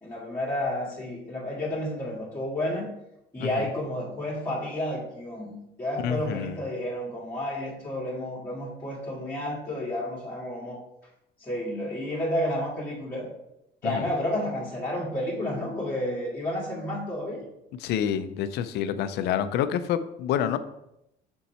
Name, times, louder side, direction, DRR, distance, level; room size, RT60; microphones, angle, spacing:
voice 1, 0.0-2.9 3.3-5.5 5.8-10.8 11.4-13.3 13.8-17.4, left 1 dB, 15° left, -9 dB, 1.9 m, -31 dB
voice 2, 6.0-6.6 13.8-14.1 17.8-20.6, left 9 dB, 80° left, 11 dB, 0.5 m, -28 dB
5.7 x 4.5 x 4.2 m, 0.83 s
cardioid pair, 110°, 17 cm